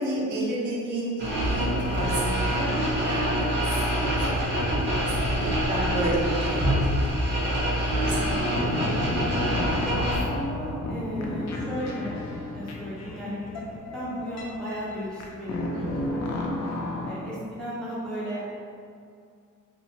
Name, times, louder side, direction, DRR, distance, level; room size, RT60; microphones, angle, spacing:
voice 1, 0.0-5.1 5.3-8.6 15.7-16.1, right 1 dB, 70° right, -6 dB, 0.8 m, -32 dB
sound 1, 1.2-10.2, equal, 35° right, 0.7 m, -25 dB
sound 2, 8.6-17.2, left 2 dB, 60° left, 0.4 m, -33 dB
voice 2, 9.7-12.2 12.5-13.4 13.9-16.5 17.0-18.4, equal, 5° left, -9 dB, 0.5 m, -35 dB
2.5 x 2.2 x 2.8 m, 2.3 s
wide cardioid pair, 140°, 31 cm